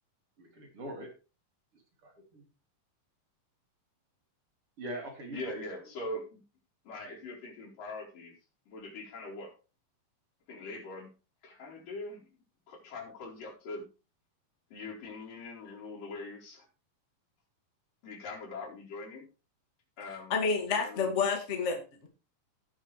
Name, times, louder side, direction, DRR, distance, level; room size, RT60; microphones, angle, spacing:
voice 1, 0.4-1.1 2.0-2.4 4.8-5.6, right 1 dB, 45° right, 1 dB, 3.5 m, -42 dB
voice 2, 5.3-6.4 6.8-8.3 8.7-9.5 10.5-11.1 11.4-12.3 12.7-13.9 14.7-16.7 18.0-19.3 20.0-20.4 20.8-21.1, left 2 dB, 85° left, -4 dB, 5.8 m, -42 dB
voice 3, 20.3-22.1, left 5 dB, 25° left, 2 dB, 1.9 m, -29 dB
18.0 x 6.4 x 3.2 m, 0.32 s
omnidirectional pair, 3.8 m